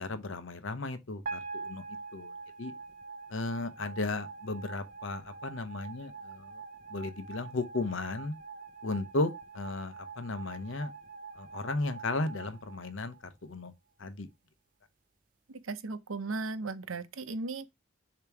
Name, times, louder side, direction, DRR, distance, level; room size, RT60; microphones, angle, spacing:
voice 1, 0.0-1.8 2.1-2.3 2.6-2.7 3.3-6.6 6.9-8.3 8.8-10.9 11.4-13.1 13.4-13.7 14.0-14.3, left 2 dB, 70° left, 0.8 m, -35 dB
sound 1, 1.3-13.5, right 4 dB, 40° right, 0.5 m, -45 dB
voice 2, 15.5-17.7, right 3 dB, 85° right, 0.7 m, -36 dB
6.9 x 2.9 x 4.6 m
head